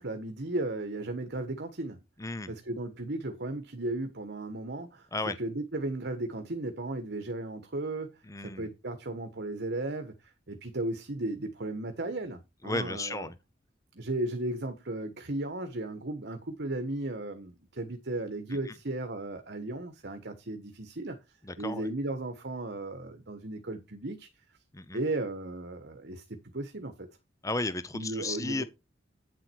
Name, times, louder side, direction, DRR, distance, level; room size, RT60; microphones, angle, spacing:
voice 1, 0.0-2.0 2.5-5.1 5.4-8.1 8.4-13.3 13.9-21.2 21.6-24.3 24.9-27.2 27.9-28.6, right 2 dB, 60° right, 1.4 m, -35 dB
voice 2, 2.2-2.5 5.1-5.4 8.3-8.7 12.6-13.4 18.5-18.8 21.4-21.9 24.7-25.0 27.4-28.6, left 2 dB, 15° left, 0.7 m, -34 dB
9.5 x 7.5 x 4.6 m
head